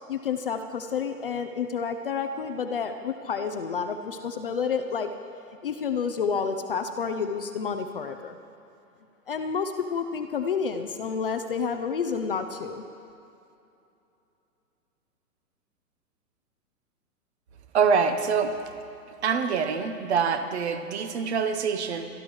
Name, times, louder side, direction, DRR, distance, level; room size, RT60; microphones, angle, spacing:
voice 1, 0.1-5.1 5.6-8.4 9.3-12.8, left 6 dB, 40° left, 7 dB, 0.5 m, -29 dB
voice 2, 17.7-18.6 19.2-22.1, right 6 dB, 45° right, 9 dB, 1.0 m, -25 dB
24.0 x 12.0 x 3.1 m, 2.7 s
hypercardioid pair, 155°, 47 cm